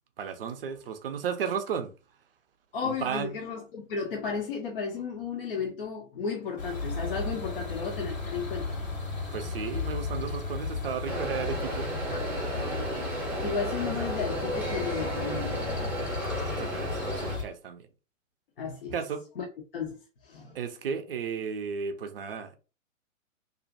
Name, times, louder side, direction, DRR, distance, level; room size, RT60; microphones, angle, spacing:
voice 1, 0.2-1.9 2.8-3.3 9.3-11.9 15.8-16.0 16.5-17.9 18.9-19.3 20.5-22.6, right 6 dB, 45° right, 0.4 m, -34 dB
voice 2, 2.7-8.8 13.4-15.6 18.6-18.9 19.4-19.5 19.7-20.6, left 5 dB, 45° left, 0.5 m, -34 dB
sound 1, 6.6-17.4, left 3 dB, 80° left, 1.4 m, -35 dB
sound 2, 11.1-17.4, right 1 dB, 5° right, 0.6 m, -34 dB
2.4 x 2.1 x 2.5 m
figure-of-eight pair, 110°, 39 cm